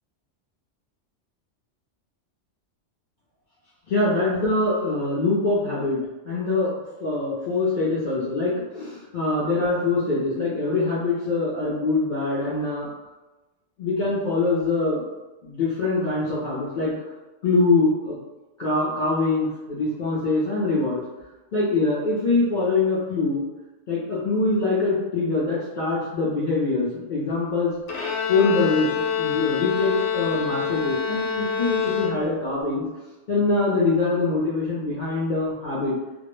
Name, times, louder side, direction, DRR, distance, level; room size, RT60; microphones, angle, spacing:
voice 1, 3.9-6.0 6.3-6.7 7.0-12.9 13.8-15.0 15.4-16.9 17.4-18.2 18.6-21.0 21.5-23.5 23.9-27.7 28.3-32.9 33.3-35.9, left 3 dB, 55° left, -9 dB, 0.6 m, -23 dB
Bowed string instrument, 27.9-32.6, left 7 dB, 75° left, 0.9 m, -27 dB
2.2 x 2.0 x 3.0 m, 1.1 s
omnidirectional pair, 1.3 m